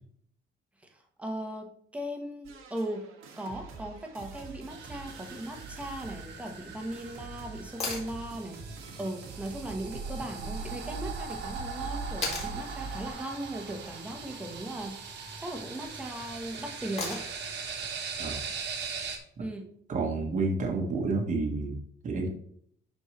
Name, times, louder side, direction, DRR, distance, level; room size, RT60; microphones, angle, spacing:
voice 1, 0.9-3.1 3.4-8.6 9.0-17.2 19.4-19.7, right 1 dB, 5° right, 2 dB, 1.1 m, -38 dB
sound 1, 2.4-13.1, right 4 dB, 90° right, 1.9 m, -43 dB
sound 2, 4.7-19.2, right 5 dB, 55° right, 1.5 m, -41 dB
sound 3, 7.8-8.1 10.3-10.4 12.2-12.5 14.6-15.0 17.0-17.5 19.6-19.7, left 3 dB, 30° left, 2.4 m, -35 dB
voice 2, 19.9-21.8 22.0-22.3, right 3 dB, 35° right, 1 dB, 1.3 m, -29 dB
12.0 x 4.4 x 3.2 m, 0.65 s
cardioid pair, 175°, 21 cm